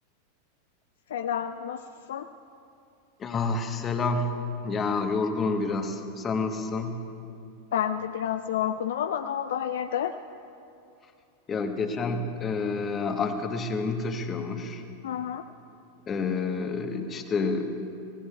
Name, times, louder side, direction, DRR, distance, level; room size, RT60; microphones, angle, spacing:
voice 1, 1.1-1.8 2.1-2.3 7.7-10.1 15.0-15.4, left 9 dB, 60° left, 10 dB, 0.3 m, -29 dB
voice 2, 3.2-4.3 4.6-7.0 11.5-14.8 16.1-17.7, left 4 dB, 25° left, 6 dB, 1.1 m, -29 dB
20.5 x 17.0 x 2.4 m, 2.6 s
figure-of-eight pair, 90°, 0 cm